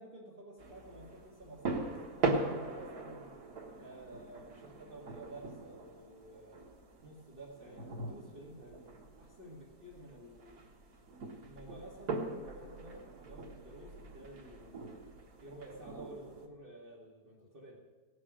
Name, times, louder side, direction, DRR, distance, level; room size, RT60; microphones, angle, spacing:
voice 1, 0.0-3.4 3.7-6.7 7.0-10.7 11.4-15.0 15.4-17.8, right 1 dB, 35° right, -4 dB, 2.2 m, -52 dB
sound 1, 0.6-16.5, right 3 dB, 85° right, 2.1 m, -41 dB
18.0 x 7.5 x 6.2 m, 1.4 s
omnidirectional pair, 1.6 m